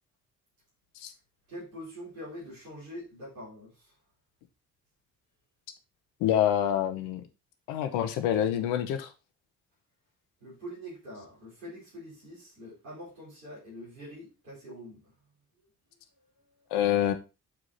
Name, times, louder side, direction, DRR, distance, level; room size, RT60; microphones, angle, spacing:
voice 1, 1.5-3.9 10.4-15.0, equal, 90° right, 4.4 m, -44 dB
voice 2, 6.2-7.2 7.7-9.1 16.7-17.1, left 10 dB, 75° left, 1.1 m, -26 dB
7.4 x 5.0 x 4.1 m
hypercardioid pair, 40°, 40 cm